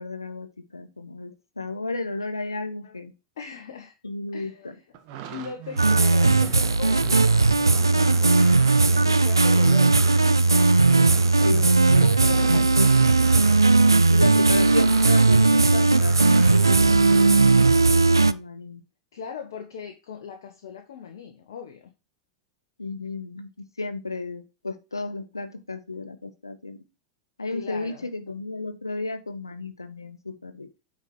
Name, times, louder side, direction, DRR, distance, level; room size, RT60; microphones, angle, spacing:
voice 1, 0.0-3.1 4.0-4.7 11.4-12.9 14.1-17.4 17.9-18.8 22.8-26.8 27.4-30.8, left 3 dB, 80° left, 9 dB, 1.4 m, -33 dB
voice 2, 3.4-3.9 4.3-4.8 5.3-7.4 7.8-8.6 8.9-10.0 12.0-12.8 19.1-21.9 27.5-28.1, left 6 dB, 60° left, 4 dB, 1.4 m, -39 dB
sound 1, 4.9-15.6 15.9-17.9, right 10 dB, 45° right, 1.6 m, -38 dB
sound 2, 5.8-18.3, right 3 dB, 85° right, 0.4 m, -18 dB
9.4 x 5.0 x 4.5 m, 0.27 s
figure-of-eight pair, 90°, 2 cm